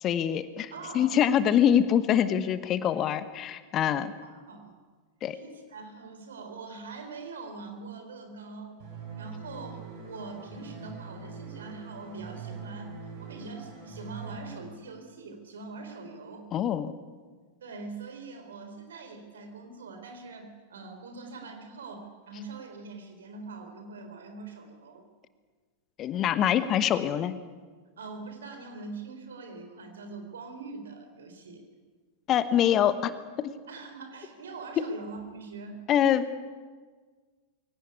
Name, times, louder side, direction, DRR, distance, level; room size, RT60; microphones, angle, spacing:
voice 1, 0.0-4.1 5.2-5.4 16.5-16.9 26.0-27.3 32.3-33.1 33.4-33.5 34.8-34.9 35.9-36.3, left 9 dB, 30° left, 13 dB, 1.2 m, -24 dB
voice 2, 0.7-1.2 4.5-4.8 5.3-8.9 9.2-12.9 13.2-16.5 17.6-25.1 28.0-31.6 33.7-35.8, right 4 dB, 65° right, 6 dB, 4.0 m, -43 dB
sound 1, 8.8-14.4, right 4 dB, 45° right, 7.0 m, -43 dB
23.0 x 17.5 x 9.7 m, 1.5 s
figure-of-eight pair, 90°, 0 cm